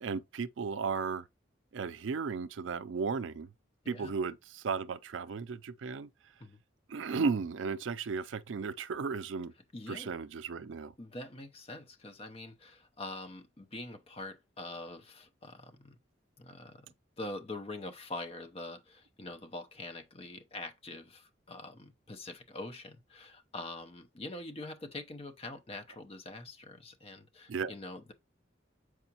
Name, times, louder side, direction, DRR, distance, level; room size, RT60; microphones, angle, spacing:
voice 1, 0.0-1.2 1.7-3.5 3.9-6.1 6.9-9.5 9.9-10.9 27.5-27.7, right 5 dB, 80° right, 0.4 m, -35 dB
voice 2, 9.7-10.1 11.0-16.0 16.4-16.9 17.2-28.1, left 2 dB, 30° left, 0.6 m, -44 dB
6.9 x 4.8 x 2.8 m
head